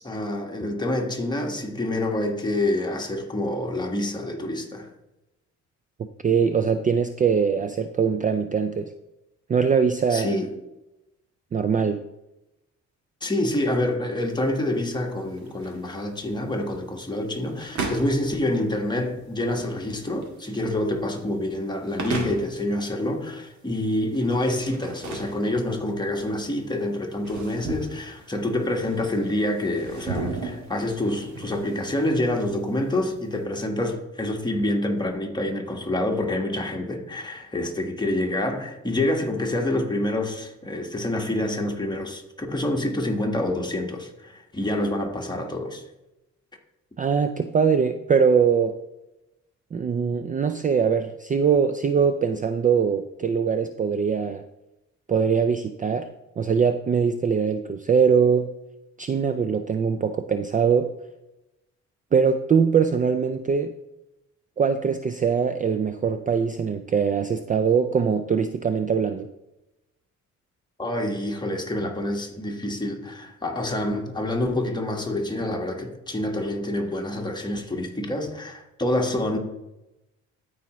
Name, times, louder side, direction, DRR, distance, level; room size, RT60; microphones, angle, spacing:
voice 1, 0.0-4.9 10.1-10.6 13.2-45.8 70.8-79.4, left 1 dB, 15° left, 1.4 m, -27 dB
voice 2, 6.0-8.9 9.5-10.4 11.5-12.0 47.0-48.8 49.7-54.4 55.1-58.5 59.0-60.9 62.1-63.7 64.6-69.3, right 6 dB, 25° right, 0.4 m, -22 dB
sound 1, 14.2-33.4, right 4 dB, 65° right, 1.9 m, -38 dB
13.0 x 4.9 x 3.1 m
cardioid pair, 90°, 30 cm